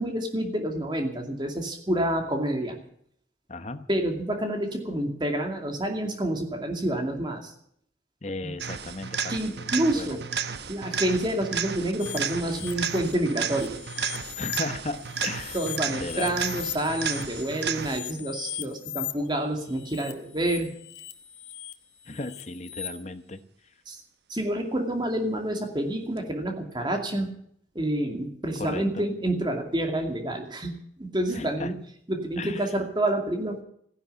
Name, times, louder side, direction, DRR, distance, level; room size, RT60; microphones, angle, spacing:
voice 1, 0.0-2.8 3.9-7.5 8.4-8.5 9.3-10.2 10.7-13.8 15.5-20.7 23.9-24.0 24.3-27.3 27.7-30.7 31.0-31.7 32.1-33.6, right 1 dB, 25° right, 4 dB, 2.4 m, -28 dB
voice 2, 3.5-3.9 8.2-10.2 14.3-15.6 16.0-16.4 22.0-23.8 28.6-29.0 31.3-31.8 32.4-32.7, left 2 dB, 40° left, 11 dB, 1.0 m, -36 dB
sound 1, 8.6-18.2 26.2-26.3, right 6 dB, 65° right, 1.0 m, -33 dB
sound 2, 12.0-14.6 14.9-19.1 19.7-22.9, left 13 dB, 80° left, 1.6 m, -39 dB
15.0 x 11.0 x 8.2 m, 0.67 s
head